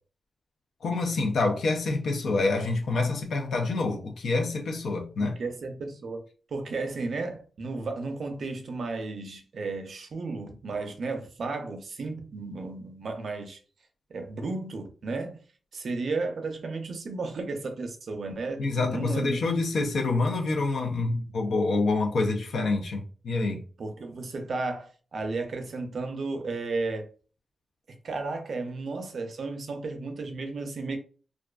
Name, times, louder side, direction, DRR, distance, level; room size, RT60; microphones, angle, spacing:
voice 1, 0.8-5.4 18.6-23.6, left 3 dB, 70° left, 0.4 m, -27 dB
voice 2, 5.2-6.2 6.5-13.6 14.1-15.4 15.7-19.4 23.8-27.1 28.0-31.0, right 3 dB, 55° right, 0.5 m, -33 dB
2.4 x 2.3 x 2.2 m
wide cardioid pair, 130°, 0 cm